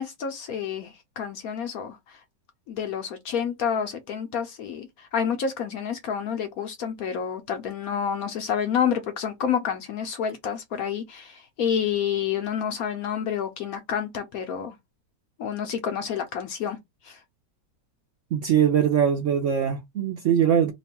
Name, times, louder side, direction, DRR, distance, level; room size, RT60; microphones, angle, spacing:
voice 1, 0.0-2.2 2.7-14.7 15.4-16.8 17.0-17.2, left 7 dB, 65° left, 1.0 m, -29 dB
voice 2, 18.3-20.7, right 8 dB, 65° right, 0.8 m, -22 dB
3.0 x 2.3 x 4.2 m
omnidirectional pair, 1.9 m